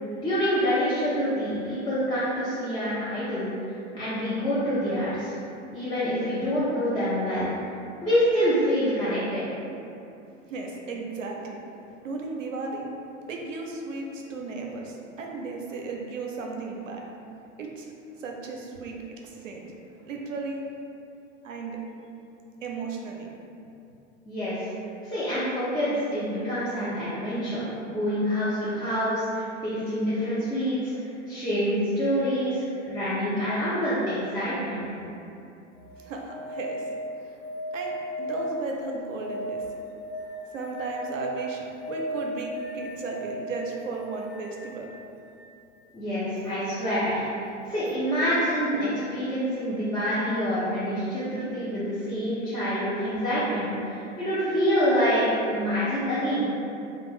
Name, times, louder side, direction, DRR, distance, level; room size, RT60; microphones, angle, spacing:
voice 1, 0.2-5.3 5.7-7.5 8.0-9.4 24.2-24.7 25.0-30.9 31.3-34.9 45.9-56.4, equal, 10° left, -13 dB, 0.6 m, -26 dB
voice 2, 10.4-11.6 12.0-12.9 13.3-17.0 17.6-20.7 21.4-21.8 22.6-23.3 36.0-36.9 37.2-37.4 37.7-39.7 40.5-44.9, right 3 dB, 85° right, 0 dB, 0.5 m, -35 dB
sound 1, 35.7-45.5 47.9-48.0, equal, 55° left, 0.7 m, -36 dB
2.4 x 2.1 x 3.2 m, 2.6 s
hypercardioid pair, 90°, 38 cm